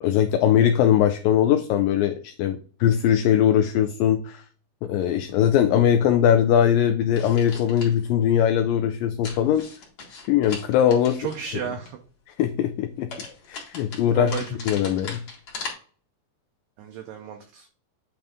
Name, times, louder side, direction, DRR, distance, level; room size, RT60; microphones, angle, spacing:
voice 1, 0.0-4.4 4.8-9.6 10.3-11.3 12.3-13.1 13.5-14.4 14.7-15.2, left 10 dB, 90° left, 8 dB, 2.0 m, -21 dB
sound 1, 7.2-8.0 9.2-11.9 13.1-15.7, left 4 dB, 45° left, 2.6 m, -39 dB
voice 2, 11.2-12.0 14.1-14.6 16.8-17.7, right 8 dB, 75° right, 4 dB, 2.0 m, -33 dB
8.8 x 3.5 x 3.6 m, 0.42 s
omnidirectional pair, 4.5 m